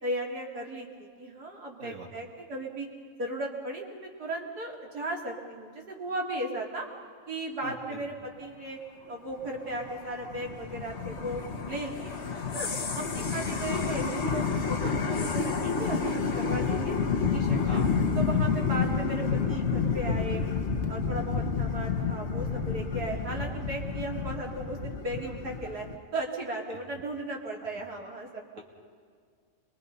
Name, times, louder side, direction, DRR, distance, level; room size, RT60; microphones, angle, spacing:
voice 1, 0.0-2.9 3.2-6.9 7.3-8.8 9.1-11.4 11.7-12.7 12.9-17.0 17.3-17.8 18.2-20.4 20.9-25.9 26.1-28.4, right 1 dB, 85° right, -1 dB, 4.0 m, -36 dB
voice 2, 7.6-8.0 13.2-13.4 17.6-18.0, right 1 dB, 55° right, 0 dB, 3.1 m, -41 dB
sound 1, 9.4-26.0, left 5 dB, 45° left, 1.6 m, -29 dB
30.0 x 23.5 x 5.6 m, 2.1 s
omnidirectional pair, 1.6 m